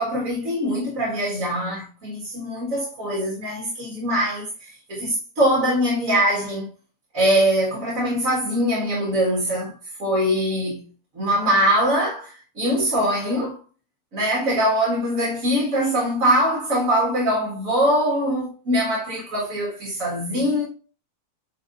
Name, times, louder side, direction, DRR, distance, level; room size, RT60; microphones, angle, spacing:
voice 1, 0.0-6.7 7.1-9.7 10.0-10.8 11.2-13.6 14.1-20.6, equal, 60° right, 2.2 m, -22 dB
9.0 x 3.1 x 3.9 m
omnidirectional pair, 1.6 m